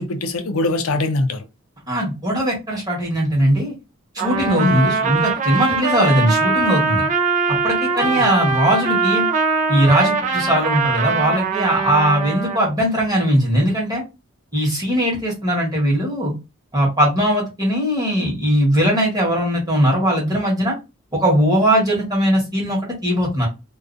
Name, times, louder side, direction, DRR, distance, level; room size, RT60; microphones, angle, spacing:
voice 1, 0.0-1.4 4.5-4.9 8.0-8.3, left 2 dB, 75° left, 0.4 m, -22 dB
voice 2, 1.9-3.7 4.1-7.1 7.5-9.3 9.7-14.0 14.5-16.3 16.7-20.7 21.1-23.5, equal, 15° right, 1.1 m, -19 dB
Trumpet, 4.2-12.6, right 4 dB, 35° right, 0.4 m, -21 dB
2.4 x 2.3 x 2.5 m
head